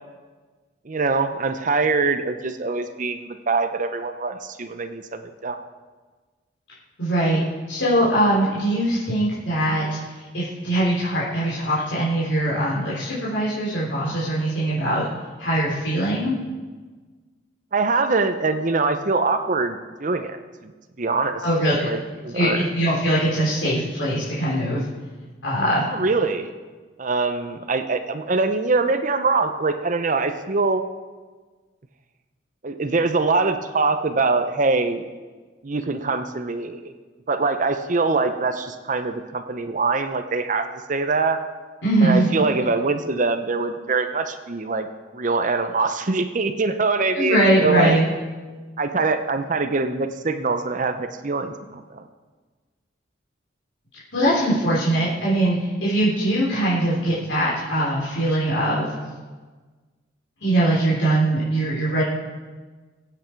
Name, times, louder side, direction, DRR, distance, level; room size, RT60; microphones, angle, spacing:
voice 1, 0.8-5.6 17.7-20.7 21.0-21.4 21.9-22.7 25.9-26.5 27.0-30.8 32.6-35.0 35.6-36.9 37.3-41.4 42.0-44.9 45.1-48.0 48.8-52.0, right 3 dB, 45° right, 8 dB, 0.7 m, -23 dB
voice 2, 7.0-7.4 7.7-10.0 10.3-15.1 15.4-16.3 21.4-21.9 22.3-24.8 25.4-25.9 41.8-42.3 47.1-48.0 54.1-58.9 60.4-62.0, right 1 dB, 75° left, -8 dB, 3.7 m, -21 dB
21.5 x 9.0 x 4.6 m, 1.4 s
head